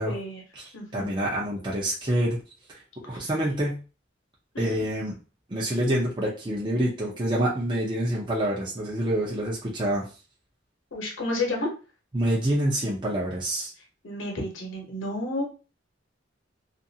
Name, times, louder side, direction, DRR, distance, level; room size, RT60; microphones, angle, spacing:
voice 1, 0.0-0.4 0.7-1.1 3.1-3.3 4.5-4.8 10.9-11.7 14.0-15.4, left 2 dB, 75° left, 0 dB, 0.9 m, -31 dB
voice 2, 0.9-2.4 3.1-3.8 4.6-5.1 5.5-10.1 12.1-13.7, right 1 dB, 25° right, -5 dB, 0.6 m, -26 dB
2.5 x 2.4 x 2.7 m, 0.34 s
head